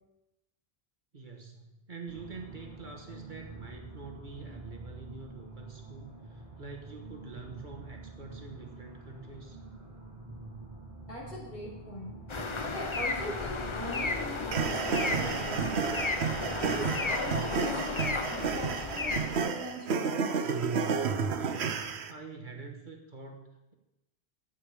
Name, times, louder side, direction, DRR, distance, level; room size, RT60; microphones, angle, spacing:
voice 1, 1.1-9.6 21.4-23.7, right 4 dB, 50° right, 2 dB, 1.5 m, -46 dB
sound 1, 2.1-17.0, right 3 dB, 35° right, 2.8 m, -47 dB
voice 2, 11.1-12.2 12.6-16.0 16.6-20.5, left 1 dB, 60° left, -6 dB, 5.4 m, -40 dB
sound 2, 12.3-19.4, left 3 dB, 30° left, 0.7 m, -34 dB
sound 3, 14.5-22.1, right 5 dB, 85° right, 1.1 m, -31 dB
12.0 x 8.8 x 5.0 m, 0.97 s
omnidirectional pair, 1.1 m